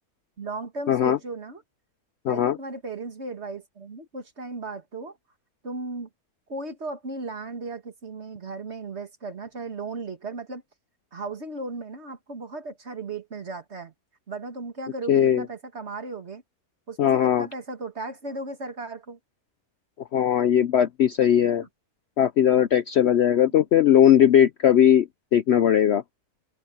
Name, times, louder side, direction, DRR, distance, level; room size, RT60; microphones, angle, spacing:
voice 1, 0.4-1.6 2.3-5.2 5.6-6.1 6.5-10.6 11.1-13.9 14.3-16.4 16.9-19.2 21.3-21.7 23.3-23.6, right 3 dB, 45° right, 2.3 m, -36 dB
voice 2, 0.9-1.2 2.2-2.6 15.1-15.4 17.0-17.5 20.1-21.6 22.2-26.0, left 10 dB, 65° left, 0.7 m, -19 dB
omnidirectional pair, 1.6 m